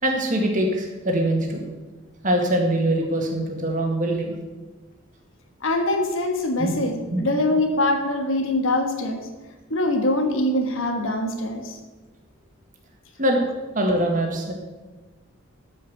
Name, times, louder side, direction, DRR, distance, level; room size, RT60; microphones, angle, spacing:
voice 1, 0.0-1.6 2.2-4.4 6.6-6.7 7.1-7.2 13.2-13.4 13.7-14.5, right 1 dB, 35° right, 2 dB, 1.7 m, -23 dB
voice 2, 5.6-9.2 9.7-11.8, left 1 dB, 65° left, 4 dB, 1.4 m, -23 dB
12.5 x 5.4 x 6.8 m, 1.2 s
head